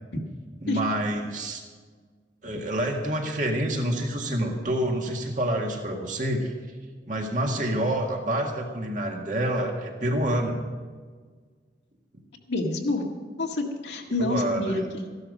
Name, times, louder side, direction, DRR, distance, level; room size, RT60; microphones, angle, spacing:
voice 1, 0.6-1.6 2.4-6.5 7.1-10.7 14.2-14.8, right 1 dB, 45° right, 2 dB, 1.9 m, -27 dB
voice 2, 12.5-13.0 13.4-15.0, left 2 dB, 80° left, 0 dB, 1.9 m, -28 dB
14.5 x 12.0 x 5.4 m, 1.5 s
head